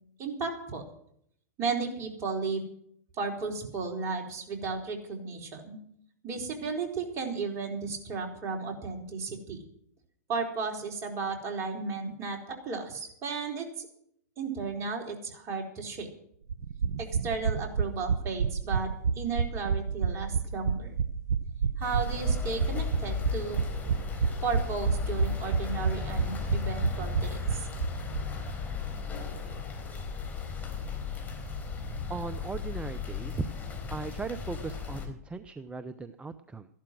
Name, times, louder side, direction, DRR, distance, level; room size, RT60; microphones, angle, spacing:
voice 1, 0.2-0.8 1.6-2.7 3.1-5.8 6.2-9.6 10.3-13.9 14.4-16.1 17.0-18.9 19.1-21.0 21.8-23.6 24.4-27.7, right 4 dB, 35° right, 1 dB, 4.3 m, -34 dB
sound 1, 16.5-28.2 28.5-28.6 28.8-28.9, right 6 dB, 75° right, 0.8 m, -29 dB
sound 2, 21.8-35.1, left 5 dB, 20° left, 4.0 m, -35 dB
voice 2, 32.1-33.5 33.9-36.7, right 4 dB, 10° right, 12 dB, 0.6 m, -37 dB
14.5 x 12.0 x 6.2 m, 0.68 s
hypercardioid pair, 120°, 9 cm